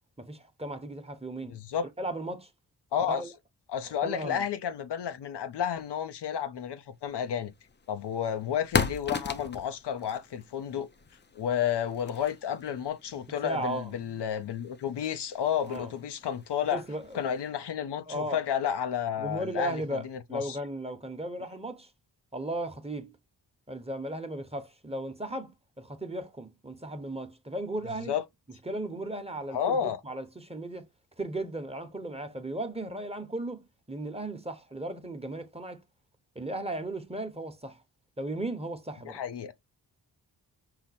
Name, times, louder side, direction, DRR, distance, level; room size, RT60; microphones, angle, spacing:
voice 1, 0.2-1.6 2.0-2.5 3.1-3.3 4.0-4.5 13.4-13.9 15.7-15.9 16.7-17.2 18.1-18.4 19.2-21.9 22.3-23.1 23.7-28.1 28.7-30.9 31.2-35.8 36.3-37.8 38.2-39.2, right 1 dB, 15° right, 1.1 m, -36 dB
voice 2, 1.5-1.9 2.9-3.2 3.7-7.5 7.9-10.9 11.3-16.8 17.1-20.6 28.1-28.2 29.5-30.0 39.0-39.5, left 9 dB, 65° left, 0.7 m, -31 dB
sound 1, 7.2-17.5, left 5 dB, 25° left, 0.6 m, -38 dB
5.8 x 2.1 x 4.1 m
cardioid pair, 55°, 43 cm